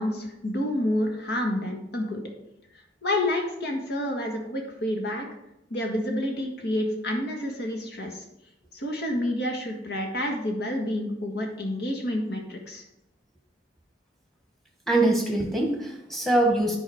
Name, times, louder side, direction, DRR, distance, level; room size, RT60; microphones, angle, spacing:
voice 1, 0.0-2.2 3.0-5.3 5.7-8.2 8.7-12.8, left 1 dB, 65° left, 2 dB, 1.6 m, -29 dB
voice 2, 14.9-16.8, right 2 dB, ahead, 1 dB, 1.4 m, -23 dB
9.8 x 4.9 x 4.9 m, 0.86 s
head